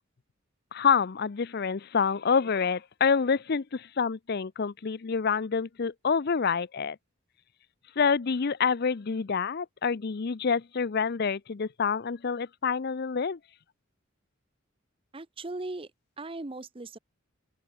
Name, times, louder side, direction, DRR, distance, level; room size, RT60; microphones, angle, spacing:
voice 1, 0.7-7.0 8.0-13.4, left 5 dB, 50° left, 0.5 m, -27 dB
voice 2, 15.1-15.9 16.2-17.0, right 2 dB, 25° right, 0.8 m, -38 dB
open air
head